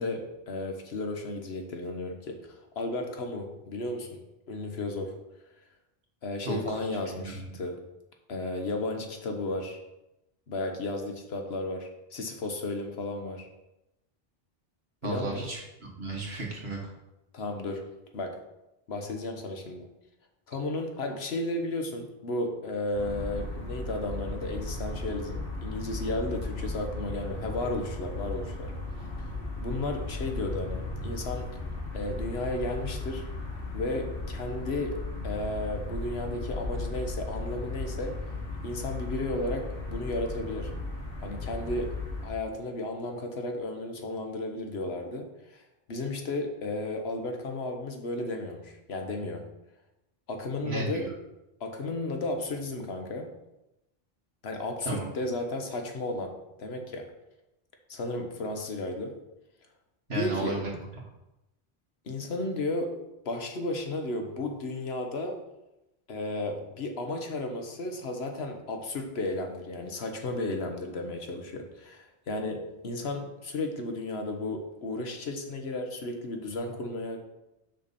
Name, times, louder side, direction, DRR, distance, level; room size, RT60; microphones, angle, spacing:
voice 1, 0.0-4.2 4.5-5.1 6.2-7.8 8.3-9.8 10.5-13.5 15.0-15.5 17.3-17.8 18.1-18.4 18.9-19.9 20.5-28.7 29.6-31.5 31.9-33.2 33.7-35.0 35.2-38.2 38.6-40.7 41.2-41.9 42.2-45.6 45.9-49.4 50.3-51.1 51.6-53.3 54.4-57.1 57.9-59.1 60.1-60.6 62.0-63.0 63.2-65.4 66.1-77.2, left 2 dB, 85° left, 4 dB, 1.3 m, -34 dB
voice 2, 6.5-6.8 7.1-7.5 15.0-16.8 50.6-51.1 54.9-55.1 60.1-60.7, right 3 dB, 85° right, -2 dB, 1.9 m, -34 dB
sound 1, 22.9-42.3, left 2 dB, 60° left, 1.6 m, -36 dB
6.8 x 6.1 x 4.2 m, 0.93 s
omnidirectional pair, 1.0 m